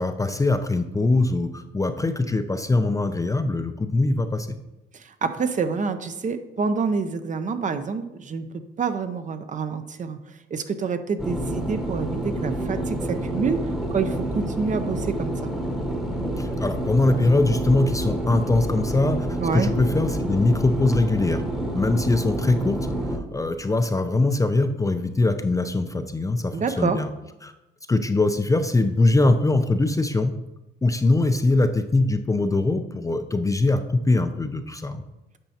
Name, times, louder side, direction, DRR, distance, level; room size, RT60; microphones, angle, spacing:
voice 1, 0.0-4.5 16.4-21.4 21.7-27.1 27.4-27.5 27.9-30.4 30.8-35.0, left 2 dB, 15° left, 8 dB, 0.4 m, -22 dB
voice 2, 4.9-10.2 10.5-13.6 13.9-15.5 19.4-19.7 26.5-27.0, right 5 dB, 40° right, 9 dB, 0.6 m, -27 dB
sound 1, 11.2-23.2, right 1 dB, ahead, 1.0 m, -28 dB
8.9 x 5.2 x 2.8 m, 0.98 s
cardioid pair, 90°, 20 cm